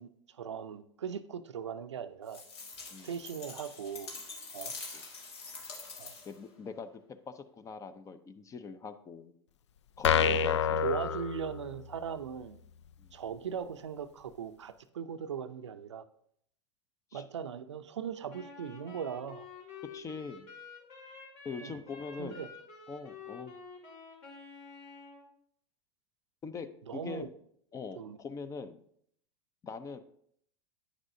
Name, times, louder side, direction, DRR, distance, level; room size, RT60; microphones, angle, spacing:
voice 1, 0.0-2.4 3.0-4.1 4.5-4.7 6.0-6.2 10.1-10.3 10.8-12.6 13.1-16.0 17.1-19.5 21.6-21.8 22.2-22.5 26.9-27.3 27.9-28.2, right 7 dB, 90° right, 11 dB, 0.5 m, -39 dB
sound 1, 2.3-6.5, left 4 dB, 65° left, 1.9 m, -45 dB
voice 2, 6.2-6.9 7.3-9.4 10.0-10.9 13.0-13.2 17.1-17.2 19.9-20.5 21.4-22.4 22.9-23.5 26.4-27.3 27.7-28.8 29.6-30.0, left 5 dB, 20° left, 12 dB, 0.5 m, -42 dB
sound 2, 10.0-12.0, left 6 dB, 85° left, 0.4 m, -28 dB
Wind instrument woodwind instrument, 18.3-25.3, left 5 dB, 45° left, 2.3 m, -49 dB
9.7 x 6.1 x 2.7 m, 0.68 s
hypercardioid pair, 105°, 14 cm